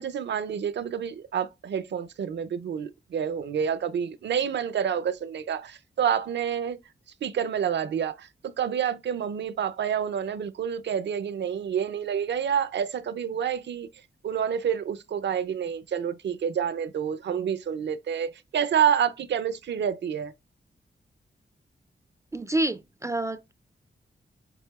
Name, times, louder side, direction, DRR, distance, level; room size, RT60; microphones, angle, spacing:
voice 1, 0.0-6.8 7.2-8.3 8.6-13.9 14.2-20.3, right 8 dB, 80° right, 0.5 m, -28 dB
voice 2, 22.3-23.5, right 1 dB, 15° right, 0.3 m, -28 dB
7.6 x 2.7 x 2.3 m
wide cardioid pair, 125°, 18 cm